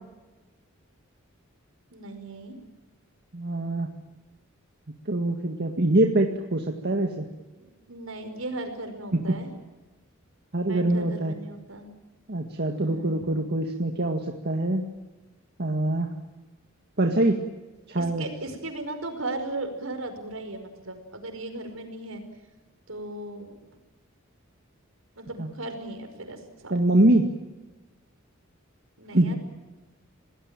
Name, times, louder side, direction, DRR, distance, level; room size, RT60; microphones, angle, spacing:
voice 1, 1.9-2.6 7.6-9.5 10.7-11.9 12.7-13.2 17.9-22.2 22.9-23.5 25.2-26.7 29.0-29.4, right 2 dB, 80° right, 6 dB, 5.3 m, -37 dB
voice 2, 3.3-3.9 5.1-7.3 9.2-9.3 10.5-11.4 12.3-14.8 15.6-16.1 17.0-17.4 17.9-18.3 25.4-25.5 26.7-27.3 29.1-29.3, right 1 dB, 55° right, 3 dB, 1.9 m, -24 dB
28.5 x 19.0 x 9.0 m, 1.2 s
head